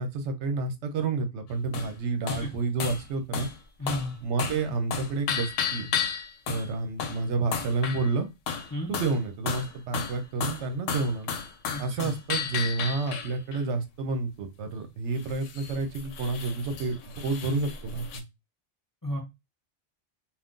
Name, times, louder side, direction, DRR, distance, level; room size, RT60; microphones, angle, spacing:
voice 1, 0.0-3.5 4.2-5.9 6.5-8.3 8.9-11.3 11.8-18.2, right 3 dB, 70° right, 7 dB, 0.9 m, -30 dB
sound 1, 1.7-1.9 2.3-2.5 2.8-3.0 3.3-3.6 3.9-4.1 4.4-4.7 4.9-6.7 7.0-7.2 7.5-8.1 8.5-9.2 9.5-13.6 15.2-18.2, left 7 dB, 80° left, 0.9 m, -33 dB
voice 2, 3.8-4.2 8.7-8.9 11.7-12.1 19.0-19.2, left 1 dB, 25° left, 0 dB, 0.5 m, -33 dB
2.5 x 2.4 x 3.6 m, 0.23 s
omnidirectional pair, 1.3 m